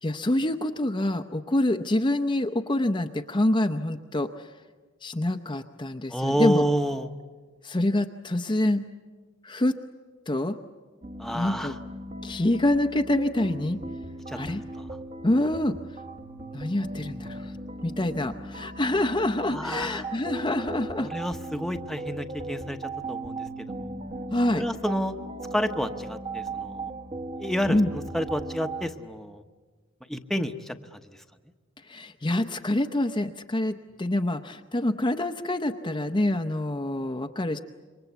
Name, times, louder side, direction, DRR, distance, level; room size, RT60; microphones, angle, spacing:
voice 1, 0.0-4.5 5.0-6.7 7.6-8.8 9.4-9.7 10.3-10.5 11.3-11.7 12.2-13.8 14.3-14.6 15.2-15.7 16.5-17.5 17.8-21.1 24.3-24.7 27.7-27.9 31.9-37.6, left 1 dB, 25° left, 6 dB, 0.7 m, -26 dB
voice 2, 6.1-7.1 11.2-11.7 14.3-14.4 14.8-14.9 19.5-20.0 21.0-22.8 23.1-23.9 24.5-25.1 25.5-26.9 27.4-29.4 30.1-31.0, equal, ahead, 6 dB, 1.0 m, -29 dB
sound 1, 11.0-28.9, right 2 dB, 35° right, 1.3 m, -38 dB
27.5 x 23.5 x 8.1 m, 1.4 s
head